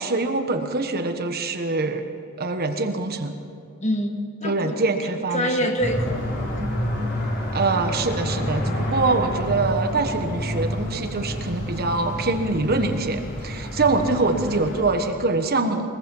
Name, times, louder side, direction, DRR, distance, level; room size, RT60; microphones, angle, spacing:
voice 1, 0.0-2.1 2.4-3.4 4.4-5.7 7.5-15.9, right 3 dB, 45° right, 6 dB, 1.3 m, -24 dB
voice 2, 3.8-6.2, equal, 30° left, 4 dB, 1.8 m, -26 dB
sound 1, 5.8-14.8, equal, 50° left, 4.7 m, -28 dB
22.0 x 21.5 x 5.5 m, 2.4 s
head